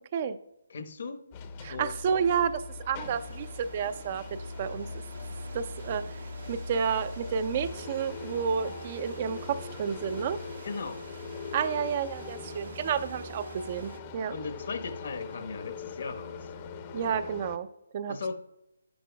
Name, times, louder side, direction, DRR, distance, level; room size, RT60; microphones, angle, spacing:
voice 1, 0.7-1.2 1.7-1.9 10.6-11.0 14.3-16.5 18.1-18.3, left 4 dB, 60° left, 5 dB, 1.2 m, -37 dB
sound 1, 1.3-17.6, left 4 dB, 30° left, 0.7 m, -41 dB
voice 2, 1.6-4.9 5.5-6.1 6.5-10.4 11.5-14.3 16.9-17.7 17.9-18.2, right 7 dB, 35° right, 12 dB, 0.4 m, -30 dB
sound 2, 3.0-14.0, right 4 dB, 65° right, 0.8 m, -48 dB
11.0 x 10.0 x 2.3 m, 0.87 s
figure-of-eight pair, 155°, 0 cm